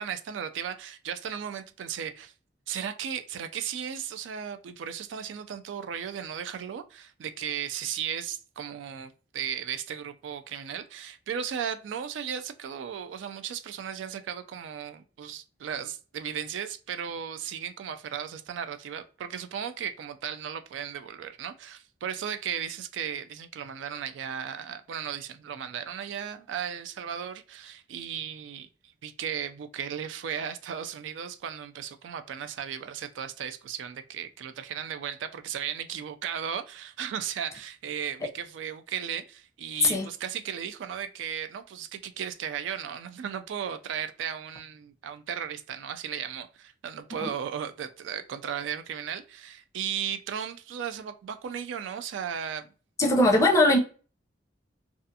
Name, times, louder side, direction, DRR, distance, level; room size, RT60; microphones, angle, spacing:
voice 1, 0.0-2.3 2.7-28.7 29.0-52.7, right 8 dB, 80° right, 0.3 m, -36 dB
voice 2, 53.0-53.8, left 1 dB, 15° left, 0.5 m, -20 dB
2.4 x 2.3 x 2.6 m
head